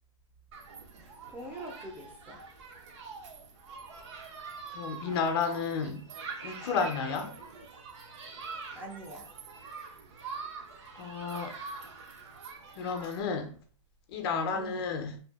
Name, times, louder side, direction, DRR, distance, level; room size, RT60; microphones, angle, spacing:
Human group actions, 0.5-13.2, right 4 dB, 60° right, 0.7 m, -44 dB
voice 1, 1.0-2.4 8.7-9.3 14.5-14.8, right 1 dB, 10° right, 0.5 m, -44 dB
voice 2, 4.7-6.0 6.4-7.3 11.0-11.5 12.8-13.5 14.1-15.2, left 5 dB, 50° left, 0.5 m, -32 dB
2.7 x 2.4 x 2.3 m
hypercardioid pair, 130°, 17 cm